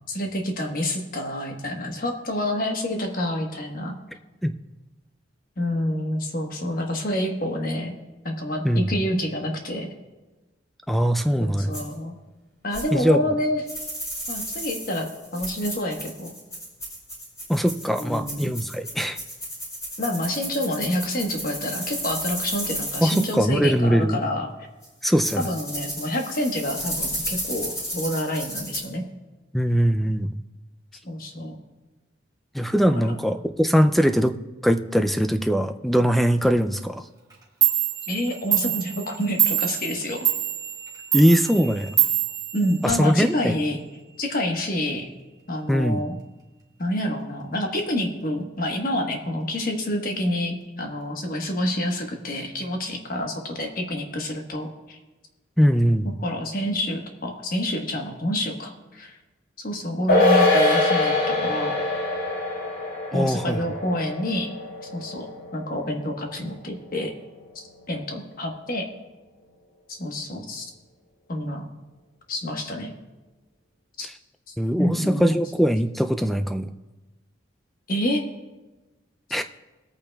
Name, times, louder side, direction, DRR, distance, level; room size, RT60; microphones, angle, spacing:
voice 1, 0.1-4.0 5.6-7.9 8.2-9.9 11.4-12.2 12.6-13.6 14.3-16.3 18.0-18.5 20.0-24.5 25.4-29.0 31.0-31.6 38.1-40.3 42.5-43.8 44.2-45.1 45.5-46.2 46.8-55.0 56.2-59.2 59.6-61.8 63.1-64.5 64.9-65.3 65.5-67.1 67.9-68.8 69.9-70.7 71.3-71.7 72.3-72.9 74.0-74.1 74.5-75.3 77.9-78.2, left 1 dB, 45° left, 3 dB, 1.3 m, -28 dB
voice 2, 10.9-11.7 12.9-13.2 17.5-19.2 23.0-24.2 25.0-25.4 29.5-30.4 32.5-34.4 34.6-37.0 41.1-41.9 42.8-43.5 45.7-46.0 55.6-56.2 63.1-63.6 74.6-76.7 79.3-79.4, equal, ahead, 7 dB, 0.3 m, -21 dB
sound 1, 11.7-11.8 12.7-12.8 13.7-23.3 24.8-24.9 25.2-28.8, equal, 15° left, 3.9 m, -33 dB
Clock, 37.3-37.4 37.6-43.3, right 11 dB, 20° right, 1.5 m, -25 dB
sound 2, 60.1-66.7 67.0-67.1, left 2 dB, 75° left, 3.4 m, -23 dB
20.5 x 8.7 x 2.3 m, 1.2 s
head